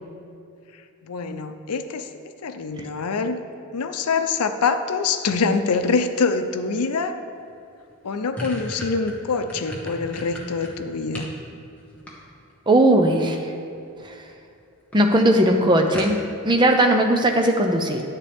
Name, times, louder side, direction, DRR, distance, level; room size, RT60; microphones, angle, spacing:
voice 1, 1.0-2.1 2.4-3.4 3.7-7.2 8.0-11.3, left 4 dB, 90° left, 9 dB, 0.6 m, -25 dB
sound 1, 7.5-7.6 7.9-11.4 11.8-12.6 13.7-14.1 14.5-14.6 14.9-15.0 15.3-15.4 15.9-16.5, equal, 5° left, 1.2 m, -36 dB
voice 2, 12.7-13.4 14.0-14.1 14.9-16.2 16.4-18.0, right 1 dB, 20° right, 3 dB, 0.6 m, -18 dB
10.5 x 8.3 x 3.5 m, 2.6 s
head